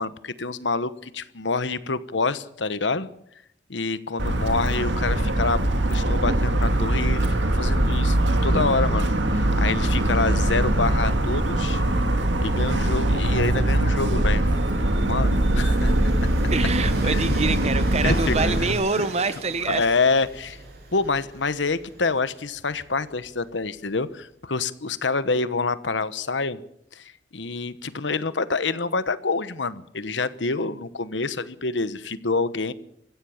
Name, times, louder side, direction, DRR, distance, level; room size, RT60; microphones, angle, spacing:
voice 1, 0.0-3.1 3.7-5.6 5.9-7.3 7.5-8.2 8.4-11.8 12.4-14.5 14.8-16.3 17.0-17.4 18.0-18.3 18.6-18.7 19.0-19.1 19.7-20.6 20.9-26.6 26.9-32.7, left 3 dB, 80° left, 14 dB, 1.1 m, -27 dB
Motor vehicle (road) / Siren, 4.2-18.7, right 1 dB, 90° right, 2.1 m, -22 dB
Train, 14.1-23.9, right 2 dB, 60° right, 7.1 m, -43 dB
voice 2, 16.5-19.8, right 3 dB, 35° right, 13 dB, 1.1 m, -25 dB
24.0 x 15.5 x 7.2 m, 0.74 s
head